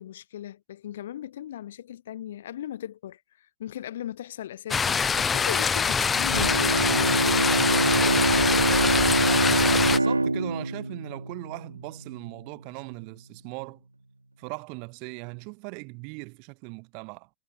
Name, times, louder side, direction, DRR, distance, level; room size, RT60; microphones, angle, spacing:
voice 1, 0.0-8.7, left 11 dB, 60° left, 3.0 m, -37 dB
sound 1, 4.7-10.0, left 6 dB, 15° left, 1.2 m, -24 dB
Bowed string instrument, 6.3-11.9, right 2 dB, 85° right, 2.3 m, -24 dB
voice 2, 9.9-13.8 14.4-17.3, right 39 dB, 45° right, 3.2 m, -39 dB
figure-of-eight pair, 90°, 0 cm